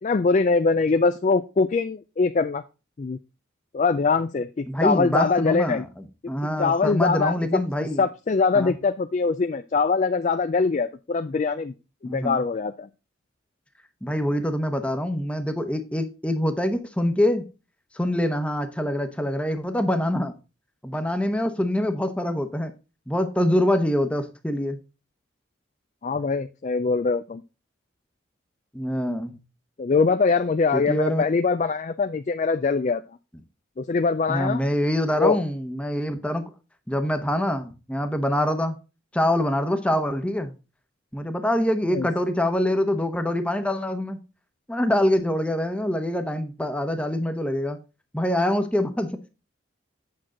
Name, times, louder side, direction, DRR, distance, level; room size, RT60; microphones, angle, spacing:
voice 1, 0.0-2.6 3.0-3.2 3.7-5.9 6.2-7.6 8.0-11.7 12.0-12.9 26.0-27.4 29.8-33.0 33.8-34.6 35.2-35.4 41.9-42.1, left 4 dB, 40° left, 0.3 m, -23 dB
voice 2, 4.7-8.0 8.5-8.8 12.0-12.4 14.0-17.4 17.9-20.3 20.8-22.7 23.1-24.8 28.7-29.4 30.7-31.2 34.3-36.4 36.9-38.8 39.1-40.5 41.1-44.2 44.7-47.8 48.1-49.2, left 1 dB, 5° left, 0.9 m, -25 dB
8.7 x 6.1 x 3.8 m
head